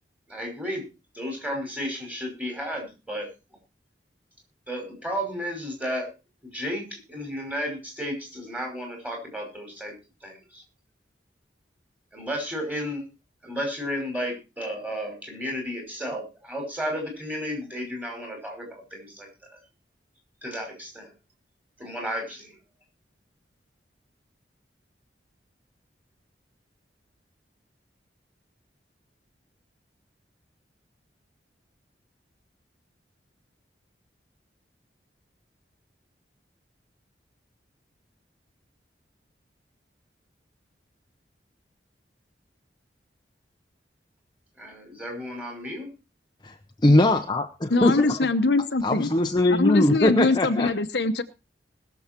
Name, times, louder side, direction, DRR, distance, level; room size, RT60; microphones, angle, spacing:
voice 1, 0.3-0.8 1.1-3.3 4.7-6.1 6.4-9.9 10.2-10.6 12.1-13.0 13.4-19.6 20.4-21.1 21.8-22.6 44.6-45.9, equal, 10° right, 1 dB, 5.4 m, -33 dB
voice 2, 46.4-48.3 48.8-50.7, left 1 dB, 25° left, 5 dB, 0.8 m, -21 dB
voice 3, 47.7-49.1 49.6-51.2, left 3 dB, 70° left, 9 dB, 1.0 m, -23 dB
20.5 x 7.2 x 4.5 m, 0.30 s
head